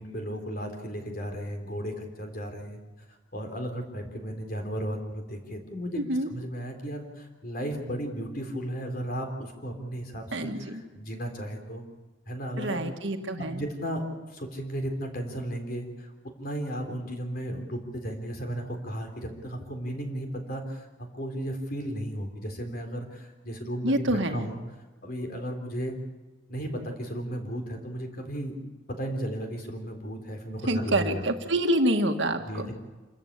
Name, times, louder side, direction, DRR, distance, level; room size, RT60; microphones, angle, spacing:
voice 1, 0.0-2.8 3.3-6.0 6.3-11.8 12.3-12.8 13.4-16.1 16.4-20.9 21.1-24.6 25.0-26.0 26.5-28.5 28.9-31.2 32.5-32.7, equal, 45° left, 4 dB, 3.9 m, -34 dB
voice 2, 6.0-6.3 10.3-10.8 12.6-13.6 23.8-24.5 30.7-32.7, right 1 dB, 65° right, 5 dB, 1.9 m, -27 dB
27.5 x 14.0 x 8.7 m, 1.3 s
head